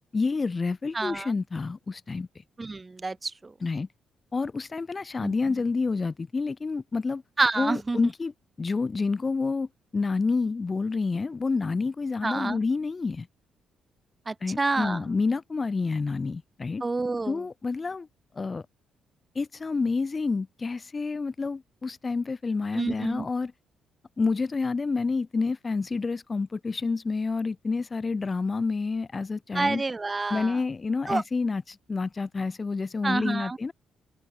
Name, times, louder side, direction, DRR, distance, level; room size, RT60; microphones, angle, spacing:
voice 1, 0.1-2.4 3.6-3.9 4.3-7.2 7.6-9.7 9.9-13.3 14.4-16.8 17.3-18.1 18.3-18.6 19.3-23.5 24.2-29.8 30.3-33.7, left 4 dB, 30° left, 3.4 m, -28 dB
voice 2, 0.9-1.3 2.6-3.5 5.2-5.3 7.4-8.0 12.2-12.6 14.3-15.0 16.8-17.4 22.7-23.2 29.5-30.6 31.1-31.2 33.0-33.6, right 3 dB, 25° right, 3.0 m, -28 dB
open air
cardioid pair, 90°, 0 cm